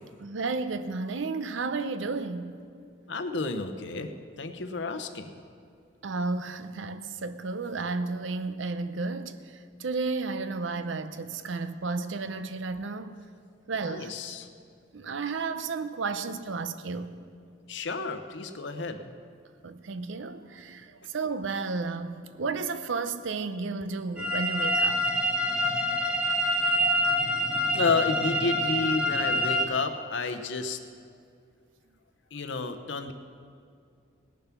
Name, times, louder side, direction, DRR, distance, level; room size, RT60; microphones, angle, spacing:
voice 1, 0.2-2.6 6.0-9.4 9.8-13.1 13.7-14.2 14.9-17.1 19.6-25.1, right 4 dB, 70° right, 0.6 m, -32 dB
voice 2, 3.1-5.4 13.8-14.5 17.7-19.1 26.6-26.9 27.7-30.8 32.3-33.1, left 3 dB, 60° left, 0.8 m, -31 dB
sound 1, 24.2-29.6, equal, 5° right, 1.1 m, -26 dB
18.5 x 6.9 x 5.9 m
head